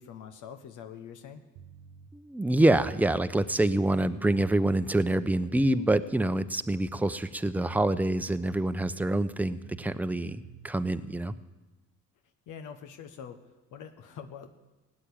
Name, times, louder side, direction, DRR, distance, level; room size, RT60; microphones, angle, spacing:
voice 1, 0.0-1.5 12.5-14.5, left 7 dB, 90° left, 7 dB, 1.3 m, -44 dB
sound 1, 1.6-2.1 3.1-3.2 3.5-5.2 7.3-7.4 7.7-8.9 9.6-11.3, right 8 dB, 85° right, 0.8 m, -50 dB
voice 2, 2.1-11.3, right 1 dB, 5° right, 11 dB, 0.7 m, -26 dB
17.5 x 8.8 x 8.7 m, 1.1 s
cardioid pair, 90°, 30 cm